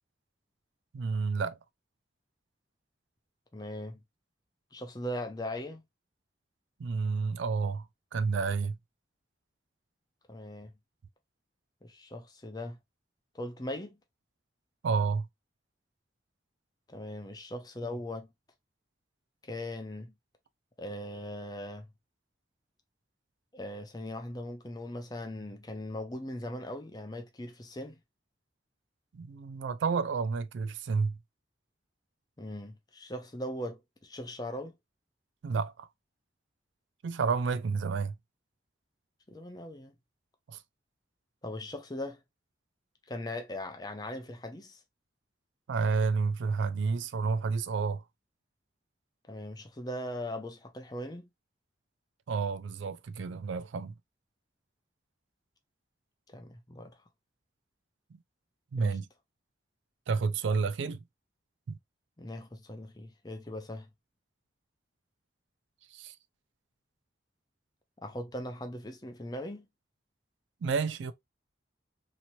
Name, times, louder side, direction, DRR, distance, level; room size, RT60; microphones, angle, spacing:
voice 1, 0.9-1.6 6.8-7.9 8.1-8.8 14.8-15.3 29.1-31.2 35.4-35.9 37.0-38.1 40.5-40.6 45.7-48.0 52.3-53.9 58.1-58.2 58.7-59.1 60.1-61.0 61.7-61.8 65.9-66.2 70.6-71.1, right 5 dB, 80° right, 0.4 m, -30 dB
voice 2, 3.5-4.0 4.7-5.8 10.3-10.7 11.8-12.8 13.3-14.0 16.9-18.3 19.4-20.1 20.8-21.9 23.5-28.0 32.4-34.8 39.3-40.0 41.4-42.2 43.1-44.8 49.3-51.3 56.3-56.9 58.8-59.0 62.2-63.9 68.0-69.7, left 1 dB, 20° left, 0.5 m, -39 dB
2.9 x 2.9 x 2.6 m
head